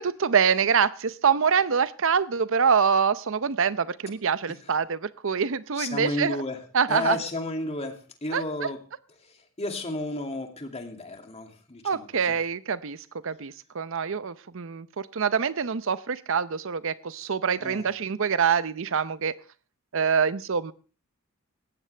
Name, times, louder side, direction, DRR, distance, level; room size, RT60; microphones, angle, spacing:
voice 1, 0.0-6.4 6.7-7.2 8.3-8.4 11.8-13.0 13.2-19.3 19.9-20.7, right 6 dB, 65° right, 16 dB, 0.7 m, -25 dB
voice 2, 5.8-6.6 6.9-8.8 9.6-12.4 17.6-17.9, left 2 dB, 30° left, 4 dB, 2.4 m, -32 dB
18.5 x 15.0 x 3.4 m, 0.39 s
head